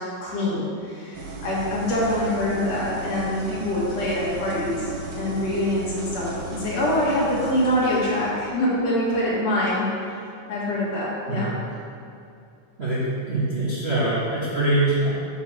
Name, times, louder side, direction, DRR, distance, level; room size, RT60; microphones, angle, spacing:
voice 1, 0.0-10.1 10.5-11.5, left 1 dB, 60° left, -6 dB, 2.5 m, -25 dB
sound 1, 1.1-8.3, right 3 dB, 80° right, 2.3 m, -36 dB
voice 2, 12.8-15.1, right 2 dB, 45° right, -10 dB, 0.8 m, -23 dB
6.5 x 4.6 x 6.1 m, 2.6 s
omnidirectional pair, 3.5 m